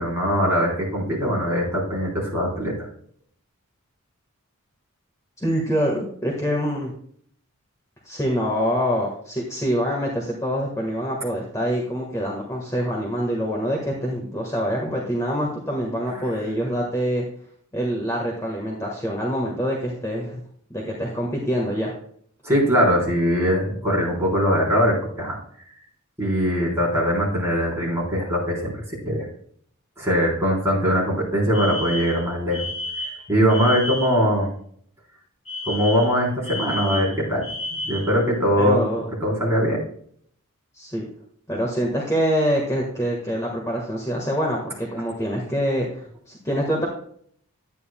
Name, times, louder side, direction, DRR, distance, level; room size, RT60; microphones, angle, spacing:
voice 1, 0.0-2.7 22.4-25.4 26.2-29.3 30.0-32.7 33.3-34.5 35.7-38.8 39.2-39.8, equal, 10° right, -4 dB, 3.7 m, -21 dB
voice 2, 5.4-6.9 8.0-17.2 17.7-20.4 20.7-21.9 38.6-39.1 40.7-41.0 41.5-46.9, equal, 15° left, -2 dB, 1.4 m, -25 dB
Alarm, 31.5-34.3 35.5-38.2, left 1 dB, 30° left, 2.9 m, -32 dB
11.0 x 9.3 x 2.2 m, 0.62 s
head